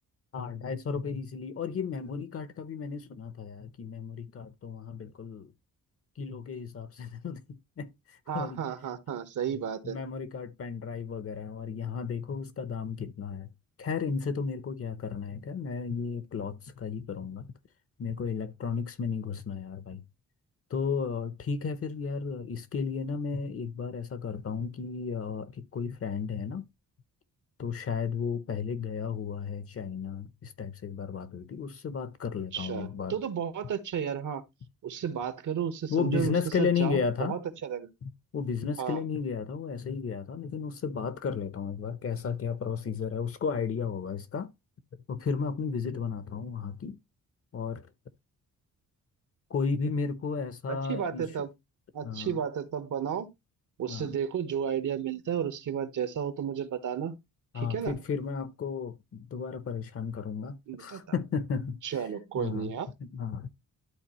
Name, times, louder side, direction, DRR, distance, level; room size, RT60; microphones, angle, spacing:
voice 1, 0.3-5.5 6.2-7.4 7.8-8.6 9.8-13.5 13.8-17.5 18.0-20.0 20.7-26.7 27.6-33.2 35.9-37.4 38.0-44.5 44.9-47.0 47.5-47.9 49.5-51.3 52.0-52.4 53.9-54.1 57.5-62.0 62.4-63.5, left 6 dB, 45° left, 0.8 m, -33 dB
voice 2, 8.3-10.0 32.5-34.4 34.8-37.9 38.8-39.0 50.7-51.5 51.9-53.3 53.8-57.2 57.5-57.9 60.7-61.0 61.8-62.9, right 8 dB, 65° right, 1.2 m, -33 dB
12.0 x 4.1 x 3.0 m
cardioid pair, 135°, 33 cm